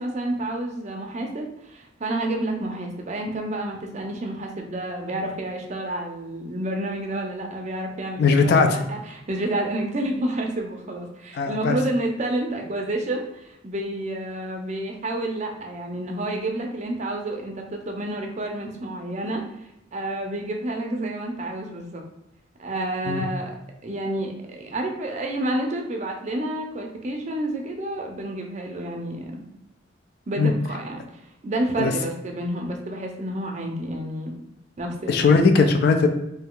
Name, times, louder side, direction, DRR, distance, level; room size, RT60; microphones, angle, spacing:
voice 1, 0.0-19.4 19.9-22.0 22.6-23.5 23.8-29.4 30.3-34.3 34.8-35.3, right 1 dB, 35° right, 2 dB, 0.5 m, -29 dB
voice 2, 8.2-8.8 11.4-11.8 23.1-23.2 30.4-30.5 31.8-31.9 35.1-36.1, left 4 dB, 55° left, 6 dB, 0.3 m, -18 dB
2.7 x 2.3 x 3.7 m, 0.85 s
head